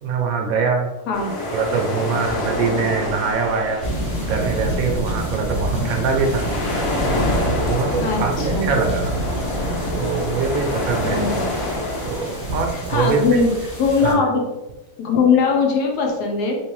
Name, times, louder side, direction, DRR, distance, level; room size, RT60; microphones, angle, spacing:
voice 1, 0.0-0.9 1.5-3.8 4.2-6.5 7.5-9.1 9.9-11.2 12.0-13.4 14.0-14.2, right 5 dB, 70° right, 3 dB, 0.9 m, -23 dB
sound 1, 1.1-12.7, left 1 dB, 60° left, 1.2 m, -27 dB
sound 2, 3.8-14.1, right 1 dB, 45° left, 1.6 m, -27 dB
voice 2, 8.0-8.7 11.0-11.4 12.7-13.5 13.8-14.4 15.0-16.6, left 4 dB, 85° left, 1 dB, 1.4 m, -20 dB
3.2 x 3.1 x 3.0 m, 1.0 s
omnidirectional pair, 1.7 m